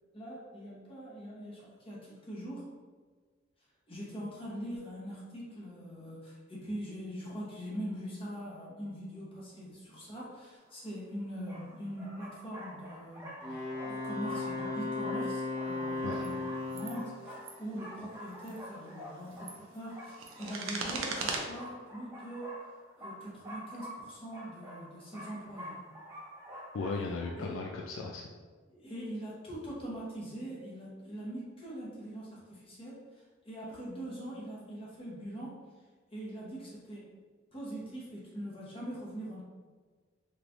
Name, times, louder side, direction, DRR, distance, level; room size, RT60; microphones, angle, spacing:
voice 1, 0.1-2.7 3.9-16.4 16.7-22.6 23.0-25.8 27.4-27.5 28.7-35.6 36.1-37.1 37.5-39.4, equal, 25° left, -6 dB, 0.9 m, -42 dB
sound 1, 10.7-10.8 11.5-27.3, equal, 15° right, 0.7 m, -47 dB
Wind instrument woodwind instrument, 13.4-17.2, left 3 dB, 10° left, 1.2 m, -36 dB
sound 2, 16.1-16.3 16.7-17.0 17.3-17.5 18.3-18.6 19.2-21.4, right 4 dB, 80° right, 0.5 m, -38 dB
voice 2, 26.7-28.3, left 3 dB, 75° left, 0 dB, 0.3 m, -36 dB
3.3 x 3.2 x 2.5 m, 1.5 s
head